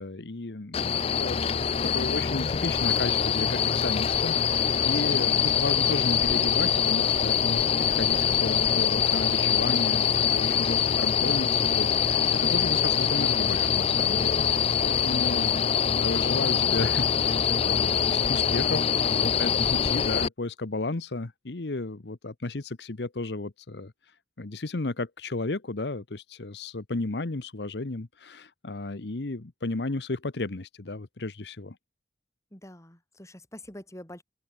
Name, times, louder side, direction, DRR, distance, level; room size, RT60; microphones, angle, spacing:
voice 1, 0.0-1.4 1.8-14.4 14.8-15.6 15.9-23.9 24.4-31.8, left 2 dB, 75° left, 1.0 m, -33 dB
sound 1, 0.7-20.3, left 7 dB, 35° left, 0.4 m, -24 dB
sound 2, 2.3-15.1, right 1 dB, 60° right, 6.7 m, -54 dB
voice 2, 19.3-19.7 32.5-34.2, left 1 dB, 20° left, 5.3 m, -45 dB
open air
head